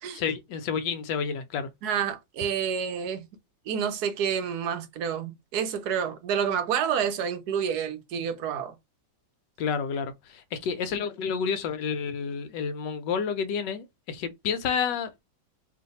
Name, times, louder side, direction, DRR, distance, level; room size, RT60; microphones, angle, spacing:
voice 1, 0.1-1.7 9.6-15.2, left 6 dB, 75° left, 1.3 m, -30 dB
voice 2, 1.8-3.3 3.7-8.7, right 8 dB, 65° right, 1.1 m, -29 dB
3.1 x 2.5 x 4.0 m
omnidirectional pair, 2.0 m